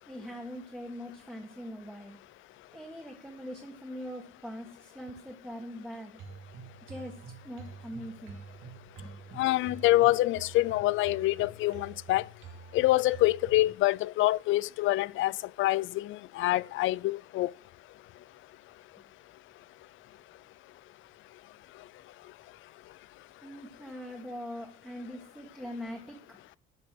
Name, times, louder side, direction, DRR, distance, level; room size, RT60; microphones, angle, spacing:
voice 1, 0.1-2.2 2.7-6.2 6.9-8.4 9.0-9.4 23.4-26.4, equal, 5° right, 1.5 m, -42 dB
sound 1, 6.2-13.7, right 4 dB, 85° right, 2.5 m, -47 dB
voice 2, 9.4-12.2 12.7-15.3 15.6-17.5, left 17 dB, 85° left, 0.5 m, -26 dB
12.5 x 5.3 x 7.6 m
cardioid pair, 175°, 20 cm